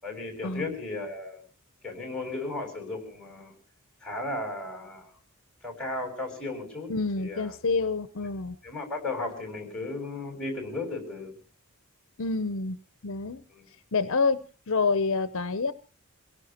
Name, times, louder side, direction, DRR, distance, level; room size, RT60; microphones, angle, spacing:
voice 1, 0.0-1.4 1.8-3.5 4.0-5.1 5.6-6.9 7.2-7.5 8.6-11.4 13.5-13.7, left 2 dB, 5° left, 2 dB, 7.1 m, -35 dB
voice 2, 6.9-8.6 12.2-12.8 13.0-13.4 13.9-14.4 14.7-15.7, left 4 dB, 60° left, 12 dB, 0.7 m, -27 dB
27.5 x 17.5 x 3.0 m, 0.35 s
head